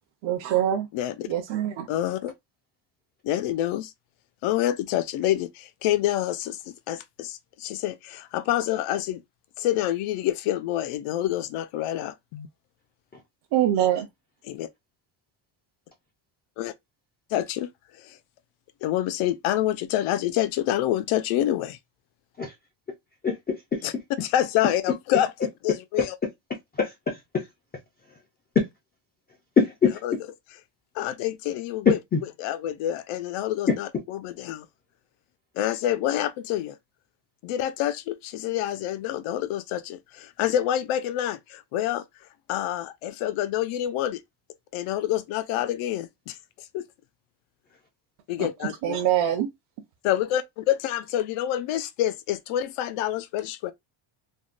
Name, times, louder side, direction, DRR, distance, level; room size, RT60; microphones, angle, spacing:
voice 1, 0.2-0.9 1.3-1.9 13.5-14.1 48.4-49.5, right 11 dB, 65° right, 0.7 m, -24 dB
voice 2, 0.9-1.3 1.9-2.3 3.2-3.9 4.4-9.2 9.6-12.5 14.4-14.7 16.6-16.7 17.3-17.7 18.0-18.2 18.8-21.8 23.8-23.9 24.2-25.3 25.6-26.1 30.0-30.1 30.9-32.0 32.4-34.7 35.6-36.7 37.4-42.0 42.5-44.2 44.7-46.8 48.3-49.0 50.0-53.7, left 12 dB, 80° left, 0.6 m, -27 dB
voice 3, 23.2-23.8 26.8-27.4 28.6-28.7 29.6-30.0 31.9-32.2, left 5 dB, 20° left, 0.3 m, -23 dB
3.5 x 2.1 x 2.4 m
cardioid pair, 165°, 50 cm